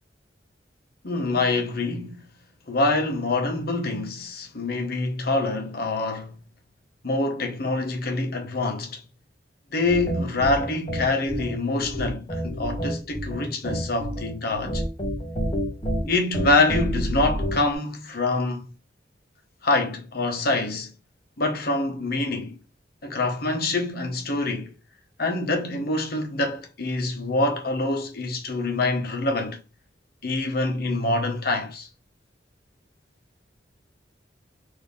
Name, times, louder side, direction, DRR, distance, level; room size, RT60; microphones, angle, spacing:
voice 1, 1.0-2.2 2.7-6.4 7.0-9.0 9.7-14.8 16.0-18.7 19.6-20.9 21.4-22.6 23.0-24.7 25.2-29.6 30.2-31.9, left 2 dB, 60° left, 1.3 m, -25 dB
sound 1, 9.8-17.7, equal, 30° left, 1.5 m, -29 dB
4.3 x 3.1 x 3.6 m
head